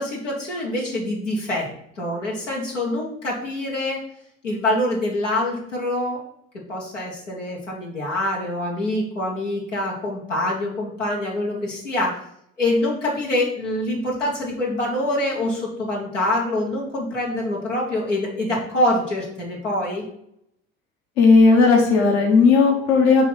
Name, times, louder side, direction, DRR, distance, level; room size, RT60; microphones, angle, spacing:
voice 1, 0.0-1.7 2.0-4.0 4.4-6.2 6.7-12.2 12.6-20.0, left 1 dB, 85° left, -3 dB, 1.3 m, -25 dB
voice 2, 21.2-23.3, left 4 dB, 65° left, 2 dB, 1.2 m, -15 dB
5.6 x 3.2 x 5.6 m, 0.73 s
figure-of-eight pair, 60°, 36 cm